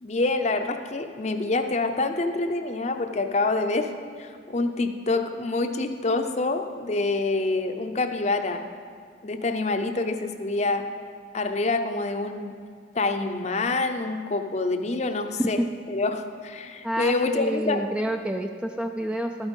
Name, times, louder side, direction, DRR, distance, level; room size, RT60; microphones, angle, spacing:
voice 1, 0.0-3.9 4.2-8.6 9.2-10.8 11.3-12.5 12.9-15.6 15.9-17.8, left 3 dB, 35° left, 7 dB, 0.6 m, -26 dB
voice 2, 16.8-19.5, right 1 dB, 5° right, 4 dB, 0.3 m, -28 dB
12.5 x 8.9 x 5.4 m, 2.1 s
head